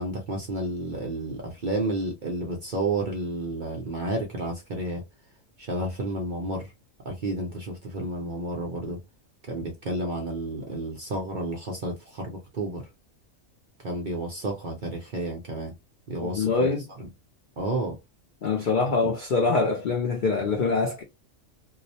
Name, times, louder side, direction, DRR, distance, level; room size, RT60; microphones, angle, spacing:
voice 1, 0.0-5.0 5.6-6.7 7.0-9.0 9.5-12.9 13.8-15.7 16.1-16.5 17.6-18.0 19.0-19.1, right 2 dB, 60° right, 0.5 m, -31 dB
voice 2, 16.2-16.9 18.4-21.0, left 4 dB, 75° left, 0.4 m, -24 dB
2.3 x 2.0 x 2.6 m
omnidirectional pair, 1.4 m